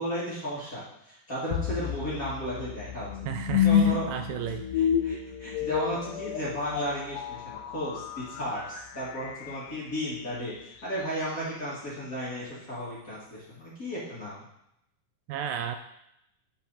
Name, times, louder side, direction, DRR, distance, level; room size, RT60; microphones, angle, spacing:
voice 1, 0.0-3.1 3.6-4.1 4.8-14.4, equal, 30° left, -8 dB, 2.1 m, -34 dB
sound 1, 1.5-10.6, left 9 dB, 80° left, 2.0 m, -30 dB
voice 2, 3.3-4.6 15.3-15.8, right 9 dB, 80° right, 7 dB, 2.1 m, -33 dB
11.5 x 4.5 x 4.1 m, 0.79 s
omnidirectional pair, 4.1 m